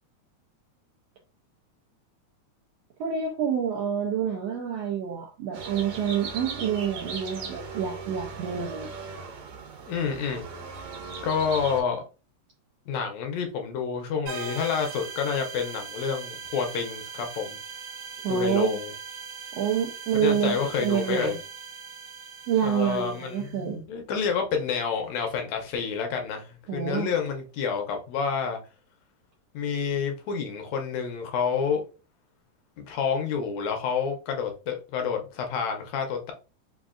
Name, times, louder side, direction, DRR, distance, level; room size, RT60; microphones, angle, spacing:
voice 1, 3.0-8.9 18.2-18.8 19.5-21.4 22.5-23.8 26.7-27.1, right 8 dB, 80° right, 1.5 m, -27 dB
sound 1, 5.5-11.8, right 4 dB, 65° right, 2.1 m, -38 dB
voice 2, 9.9-10.5 11.2-12.0 12.9-17.6 18.3-18.9 20.2-21.4 22.6-28.6 29.5-31.8 32.8-36.3, left 6 dB, 75° left, 1.8 m, -29 dB
sound 2, 14.3-23.6, right 5 dB, 45° right, 1.4 m, -40 dB
5.1 x 2.4 x 2.4 m
omnidirectional pair, 3.5 m